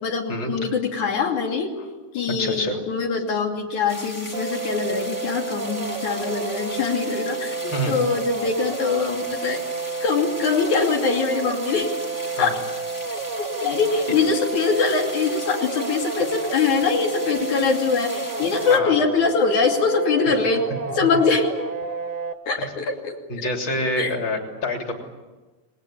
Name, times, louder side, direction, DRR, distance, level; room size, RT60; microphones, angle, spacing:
voice 1, 0.0-1.7 2.1-9.6 10.0-11.9 12.4-12.5 13.6-20.7 20.9-21.5 22.5-23.2 24.0-24.1, left 5 dB, 85° left, 1 dB, 4.1 m, -23 dB
voice 2, 2.4-2.8 7.7-7.9 12.4-12.5 18.7-18.9 23.3-24.9, left 1 dB, 40° left, 2 dB, 3.8 m, -26 dB
sound 1, 3.9-18.8, equal, 10° left, 1.6 m, -38 dB
sound 2, 4.3-22.3, right 4 dB, 90° right, 3.1 m, -30 dB
28.5 x 20.5 x 8.7 m, 1.2 s
omnidirectional pair, 3.3 m